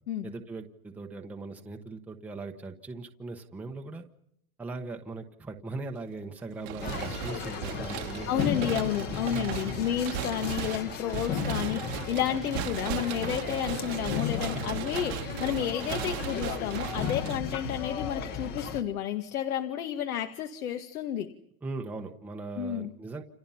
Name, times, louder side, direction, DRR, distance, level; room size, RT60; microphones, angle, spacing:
voice 1, 0.2-4.0 4.6-8.8 9.6-9.9 21.6-23.2, right 3 dB, 5° right, 2 dB, 1.1 m, -39 dB
sound 1, 6.6-17.8, right 13 dB, 45° right, 1.4 m, -37 dB
sound 2, 6.8-18.8, left 7 dB, 20° left, 1.3 m, -35 dB
voice 2, 8.3-21.3 22.6-22.9, left 10 dB, 75° left, 6 dB, 2.2 m, -31 dB
29.0 x 28.0 x 5.7 m, 0.75 s
supercardioid pair, 165°, 44 cm